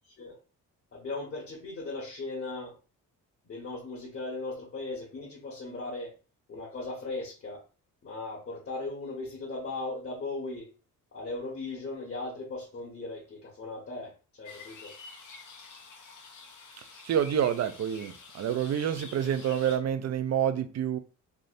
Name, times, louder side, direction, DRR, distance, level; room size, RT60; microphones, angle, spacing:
voice 1, 0.1-0.4 0.9-2.8 3.4-6.1 6.5-7.6 8.0-10.7 11.1-14.9, left 2 dB, 40° left, 1.4 m, -38 dB
sound 1, 14.4-19.8, left 4 dB, 60° left, 1.0 m, -48 dB
voice 2, 17.0-21.0, right 9 dB, 50° right, 0.5 m, -28 dB
3.4 x 2.6 x 2.6 m
cardioid pair, 90°, 33 cm